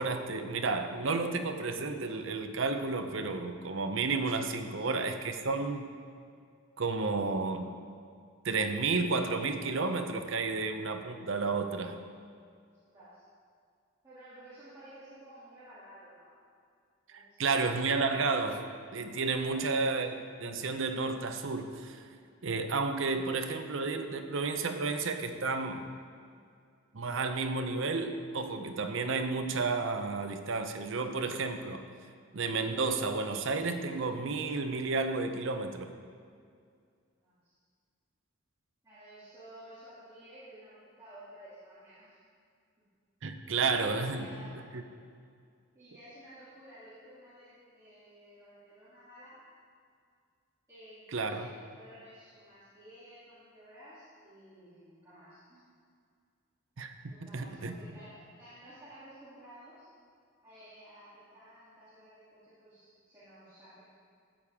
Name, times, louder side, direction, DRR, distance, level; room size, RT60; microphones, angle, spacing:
voice 1, 0.0-5.9 6.8-7.7 8.4-12.0 17.1-18.6 18.9-20.1 20.4-22.1 22.4-25.9 26.9-31.8 32.3-35.9 43.2-44.3 44.7-44.8 51.1-51.5 56.8-57.7, right 4 dB, 60° right, 7 dB, 0.7 m, -32 dB
voice 2, 4.6-5.1 7.3-7.7 12.9-13.2 14.0-16.3 17.1-17.7 19.4-19.8 37.2-37.5 38.8-42.2 43.9-44.8 45.7-49.4 50.7-55.6 57.1-59.9 60.4-63.8, right 1 dB, 15° right, -15 dB, 2.8 m, -53 dB
13.5 x 8.4 x 3.6 m, 2.2 s
head